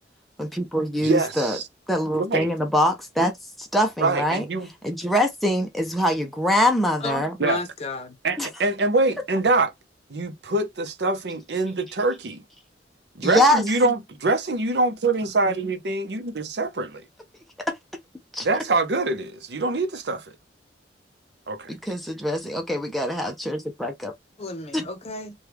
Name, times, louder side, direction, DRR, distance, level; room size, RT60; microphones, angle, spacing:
voice 1, 0.4-1.6 1.9-3.3 3.6-4.4 4.8-7.3 8.4-8.5 13.2-13.6 17.7-17.8 18.3-18.5 21.7-24.1 24.7-24.9, equal, ahead, 0.5 m, -23 dB
voice 2, 1.0-1.6 2.2-2.5 4.0-4.7 7.4-7.6 8.2-9.7 10.1-12.4 13.1-17.1 18.4-20.4 21.5-21.7, right 2 dB, 65° right, 0.7 m, -24 dB
voice 3, 7.0-8.1 24.4-25.3, left 3 dB, 35° left, 0.7 m, -32 dB
3.1 x 2.2 x 3.4 m
head